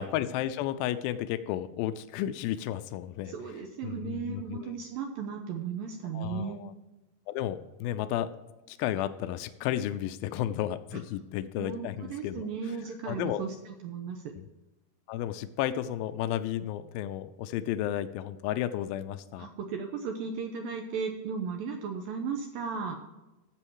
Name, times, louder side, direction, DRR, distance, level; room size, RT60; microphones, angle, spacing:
voice 1, 0.0-3.3 3.8-4.8 6.1-6.7 7.3-8.3 8.7-12.5 13.1-13.4 14.4-14.5 15.1-19.5, left 12 dB, 90° left, 11 dB, 2.1 m, -33 dB
voice 2, 3.3-6.6 10.9-11.0 11.6-14.2 19.4-23.0, right 6 dB, 75° right, 4 dB, 2.3 m, -36 dB
12.0 x 7.8 x 4.8 m, 1.0 s
omnidirectional pair, 4.9 m